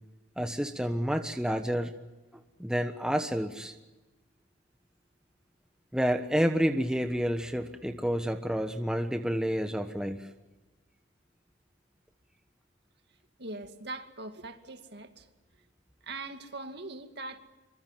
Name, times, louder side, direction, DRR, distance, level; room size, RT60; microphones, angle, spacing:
voice 1, 0.4-1.9 2.6-3.7 5.9-10.3, equal, 5° right, 6 dB, 1.2 m, -29 dB
voice 2, 13.4-15.3 16.0-17.4, right 2 dB, 60° right, 6 dB, 2.4 m, -41 dB
25.5 x 25.0 x 7.6 m, 1.1 s
head